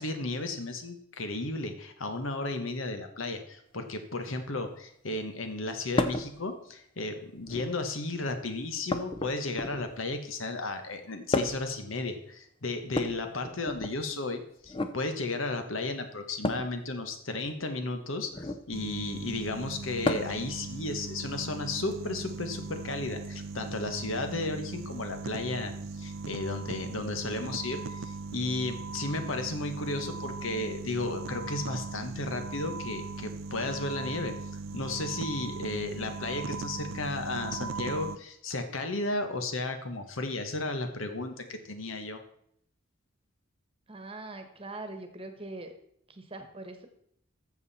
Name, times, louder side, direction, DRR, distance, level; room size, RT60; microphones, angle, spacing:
voice 1, 0.0-34.3 34.7-42.2, left 2 dB, 75° left, 7 dB, 1.3 m, -34 dB
sound 1, 6.0-6.3 7.4-7.9 8.9-10.0 11.3-11.8 12.9-14.0 14.6-15.0 16.4-16.7 18.3-18.7 20.0-20.5 21.9-22.0 23.2-23.3, left 2 dB, 25° left, 0.6 m, -31 dB
sound 2, 18.7-38.2, right 4 dB, 75° right, 0.5 m, -39 dB
voice 2, 43.9-45.7 46.1-46.9, right 2 dB, 25° right, 7 dB, 1.2 m, -42 dB
13.0 x 7.3 x 4.2 m, 0.71 s
head